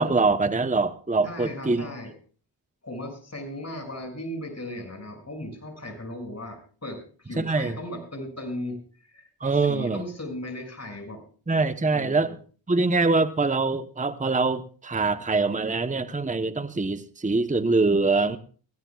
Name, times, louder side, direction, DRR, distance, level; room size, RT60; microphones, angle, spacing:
voice 1, 0.0-1.8 7.4-7.7 9.4-10.0 11.5-12.3 12.7-18.4, right 3 dB, 15° right, 10 dB, 1.0 m, -24 dB
voice 2, 1.2-2.1 2.8-9.3 9.6-11.2 11.9-12.3, left 1 dB, 35° left, 4 dB, 6.5 m, -37 dB
20.0 x 16.5 x 2.4 m, 0.41 s
cardioid pair, 45°, 46 cm